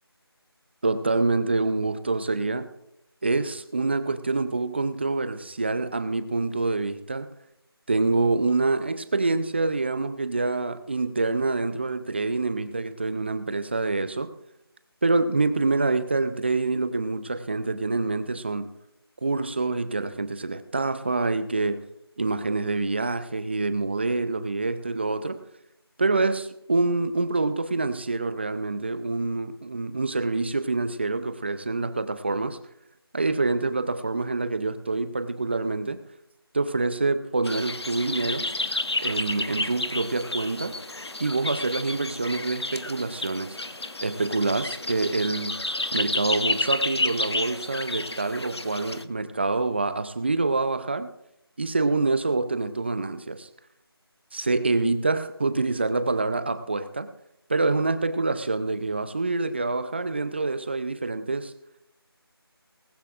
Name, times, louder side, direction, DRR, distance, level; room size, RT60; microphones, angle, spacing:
voice 1, 0.8-2.7 3.2-7.3 7.9-14.3 15.0-18.7 19.2-21.8 22.2-25.4 26.0-32.6 33.1-36.0 36.5-38.5 39.0-40.8 41.2-43.6 44.0-45.6 45.9-51.1 51.6-53.5 54.3-57.1 57.5-61.5, right 3 dB, 25° right, 12 dB, 0.6 m, -26 dB
sound 1, 37.4-49.0, left 2 dB, 90° left, 1.0 m, -31 dB
19.0 x 16.0 x 2.5 m, 0.81 s
figure-of-eight pair, 165°, 13 cm